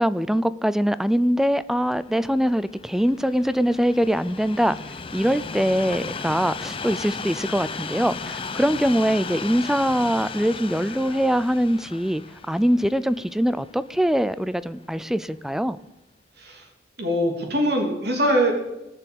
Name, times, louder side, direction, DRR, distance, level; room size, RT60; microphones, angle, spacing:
voice 1, 0.0-4.8 5.1-12.2 12.5-15.8, equal, ahead, 16 dB, 0.4 m, -23 dB
Train, 1.6-14.8 15.5-15.6, left 4 dB, 30° left, 0.7 m, -36 dB
voice 2, 17.0-18.5, equal, 65° right, 1 dB, 3.2 m, -22 dB
19.5 x 6.9 x 9.0 m, 0.94 s
head